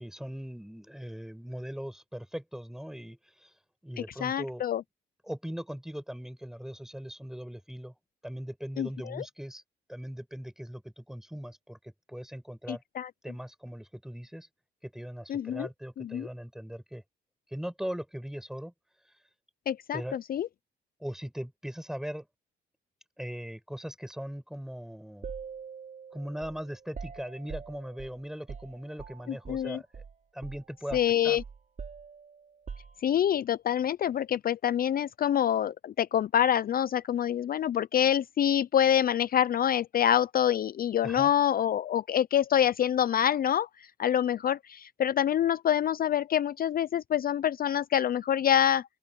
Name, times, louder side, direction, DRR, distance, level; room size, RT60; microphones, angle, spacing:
voice 1, 0.0-3.5 3.8-4.6 5.2-7.9 8.2-9.6 9.9-12.8 13.2-14.5 14.8-17.0 17.5-18.7 19.9-20.2 21.0-22.3 23.2-25.3 26.1-30.0 30.3-31.0 31.2-31.4 41.0-41.3, equal, ahead, 7.4 m, -39 dB
voice 2, 4.0-4.8 8.8-9.2 12.7-13.1 15.3-15.7 16.0-16.3 19.7-20.5 29.5-29.8 30.9-31.4 33.0-48.8, left 10 dB, 50° left, 0.5 m, -26 dB
sound 1, 25.2-29.7 29.9-30.1 30.4-33.4, right 6 dB, 40° right, 5.4 m, -44 dB
open air
cardioid pair, 90°, 20 cm